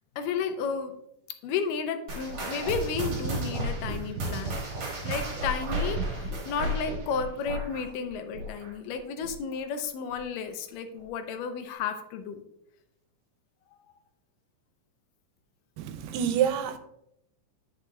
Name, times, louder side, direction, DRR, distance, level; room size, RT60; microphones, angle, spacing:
voice 1, 0.2-0.9 1.4-4.5 5.0-12.4, left 6 dB, 85° left, 2.3 m, -32 dB
sound 1, 2.1-8.9 9.2-9.5 10.1-10.2 11.0-11.1, right 1 dB, 45° right, 2.0 m, -33 dB
voice 2, 15.8-16.8, right 9 dB, 90° right, 2.3 m, -27 dB
9.7 x 6.0 x 2.3 m
omnidirectional pair, 3.9 m